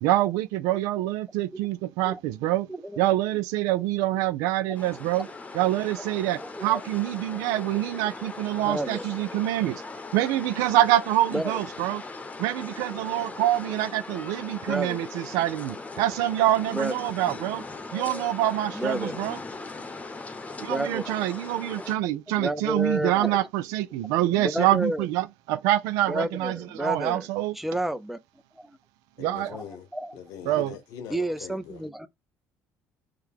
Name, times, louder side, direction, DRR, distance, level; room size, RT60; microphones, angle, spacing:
voice 1, 0.0-2.7 3.0-5.3 5.5-9.8 10.1-12.0 12.4-17.6 17.9-19.4 20.6-27.5 29.2-29.5 30.5-30.7, right 14 dB, 85° right, 0.4 m, -26 dB
sound 1, 4.7-22.0, left 3 dB, 25° left, 0.8 m, -39 dB
voice 2, 6.4-6.8 8.6-9.1 11.3-11.6 14.7-15.0 16.7-16.9 18.7-19.2 20.6-21.1 21.8-21.9 22.3-23.4 24.3-25.1 26.1-27.3 27.5-28.2 28.6-28.8 29.4-29.6 29.9-30.1 31.1-32.1, right 1 dB, 5° right, 0.5 m, -30 dB
voice 3, 29.2-31.8, left 8 dB, 80° left, 1.0 m, -42 dB
4.6 x 2.2 x 3.5 m
supercardioid pair, 80°, 6 cm